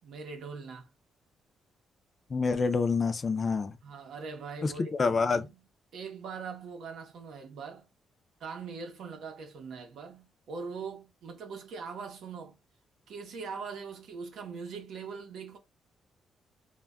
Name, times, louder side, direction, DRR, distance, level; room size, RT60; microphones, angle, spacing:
voice 1, 0.0-0.9 3.8-4.9 5.3-5.5 5.9-7.9 8.4-12.6 13.1-15.6, right 5 dB, 70° right, 0.7 m, -41 dB
voice 2, 2.3-3.8 4.6-5.5, left 4 dB, 30° left, 0.3 m, -27 dB
2.2 x 2.1 x 3.4 m
cardioid pair, 155°, 0 cm